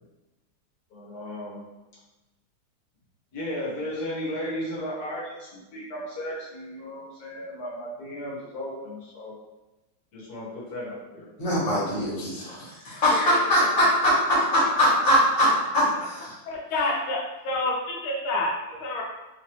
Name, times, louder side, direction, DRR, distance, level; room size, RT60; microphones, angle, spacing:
voice 1, 0.9-1.6 3.3-9.3 10.1-11.3 12.8-13.0 13.3-15.0 15.4-15.5, left 1 dB, 55° left, -5 dB, 1.4 m, -35 dB
voice 2, 11.4-15.5 15.7-15.8 16.1-16.3, equal, 25° left, -8 dB, 1.0 m, -22 dB
voice 3, 16.5-19.0, left 2 dB, 85° left, -1 dB, 1.4 m, -28 dB
3.6 x 2.9 x 3.0 m, 1.1 s
omnidirectional pair, 2.3 m